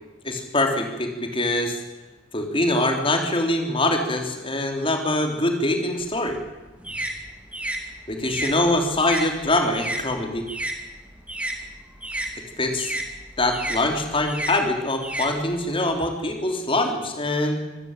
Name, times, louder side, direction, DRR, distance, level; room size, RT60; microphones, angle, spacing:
voice 1, 0.2-1.8 2.3-6.4 8.1-10.5 12.6-12.9 13.4-17.6, left 1 dB, 25° left, 4 dB, 3.4 m, -23 dB
sound 1, 6.0-10.8 11.1-15.9, right 1 dB, 5° right, 2.5 m, -32 dB
25.5 x 15.0 x 9.0 m, 1.1 s
head